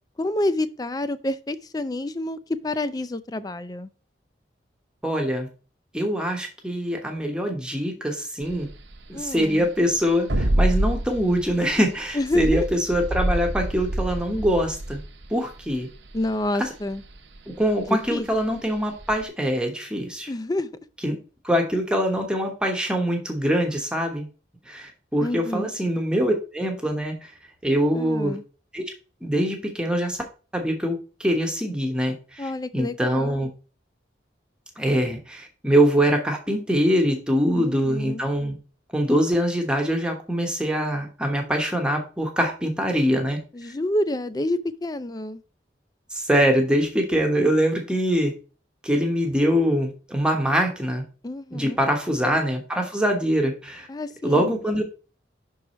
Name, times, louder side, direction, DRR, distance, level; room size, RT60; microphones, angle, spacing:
voice 1, 0.2-3.9 9.1-9.7 12.1-12.7 16.1-17.0 17.9-18.3 20.3-20.7 25.2-25.7 27.9-28.4 32.4-33.4 37.5-38.2 43.5-45.4 51.2-51.8 53.9-54.6, left 1 dB, 20° left, 0.4 m, -28 dB
voice 2, 5.0-5.5 5.9-8.7 9.1-15.0 15.3-15.9 16.6-16.7 17.6-20.3 21.0-21.2 21.4-24.3 24.7-27.3 27.6-28.4 28.7-28.8 29.2-30.2 30.5-32.4 32.7-33.5 34.8-38.6 38.9-43.4 46.1-48.4 48.8-51.0 51.5-53.9 54.2-54.8, equal, 5° right, 1.0 m, -23 dB
sound 1, 8.4-19.2, right 1 dB, 80° right, 0.9 m, -28 dB
6.0 x 4.7 x 4.1 m
head